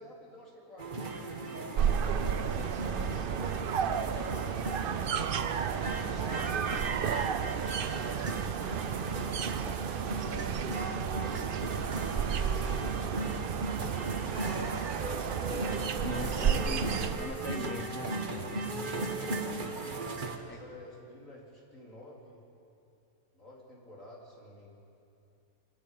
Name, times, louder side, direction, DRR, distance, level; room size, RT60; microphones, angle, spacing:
voice 1, 0.0-2.2 3.6-7.9 8.9-12.0 12.4-13.1 13.7-14.7 19.0-22.4 23.3-24.7, left 1 dB, 60° left, -4 dB, 4.4 m, -51 dB
sound 1, 0.8-20.4, right 2 dB, 35° right, 1.3 m, -37 dB
sound 2, 1.8-17.2, right 8 dB, 55° right, 0.6 m, -32 dB
voice 2, 16.0-18.3 20.5-20.6, left 2 dB, 10° left, 6 dB, 0.7 m, -40 dB
25.5 x 11.5 x 9.2 m, 2.6 s
omnidirectional pair, 1.5 m